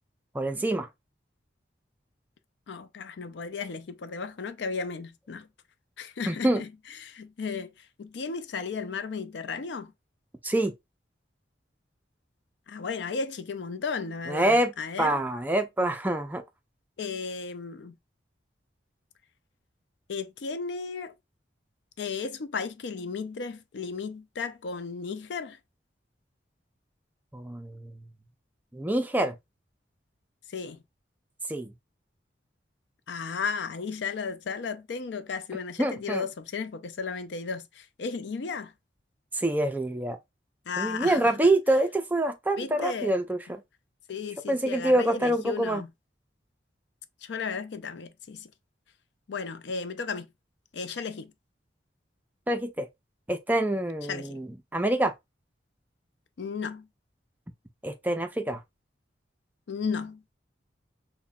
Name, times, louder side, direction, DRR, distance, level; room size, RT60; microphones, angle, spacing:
voice 1, 0.3-0.9 6.3-6.6 10.4-10.7 14.3-16.4 27.3-27.9 28.7-29.3 31.5-31.7 35.8-36.2 39.3-40.2 40.8-43.6 44.5-45.8 52.5-52.9 53.3-54.5 54.7-55.1 57.8-58.6, right 1 dB, 10° right, 0.3 m, -26 dB
voice 2, 2.7-5.5 6.0-9.9 12.7-15.2 17.0-18.0 20.1-21.1 22.0-25.6 30.5-30.8 33.1-38.7 40.7-41.4 42.6-43.1 44.1-45.9 47.2-48.5 49.3-50.3 50.7-51.3 54.0-54.4 56.4-56.9 59.7-60.2, left 5 dB, 70° left, 0.4 m, -34 dB
5.6 x 2.1 x 2.2 m
head